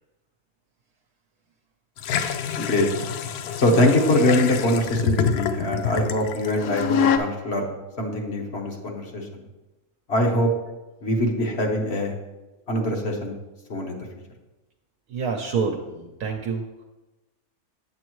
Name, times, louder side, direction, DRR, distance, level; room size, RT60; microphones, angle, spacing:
sound 1, 2.0-7.2, left 6 dB, 90° left, 1.1 m, -26 dB
voice 1, 2.6-2.9 3.6-9.4 10.1-10.5 11.0-12.1 12.7-13.4 13.7-14.1, left 1 dB, 45° left, 1 dB, 1.2 m, -23 dB
voice 2, 15.1-16.6, right 5 dB, 70° right, 2 dB, 1.1 m, -27 dB
8.1 x 7.9 x 3.0 m, 1.1 s
omnidirectional pair, 1.6 m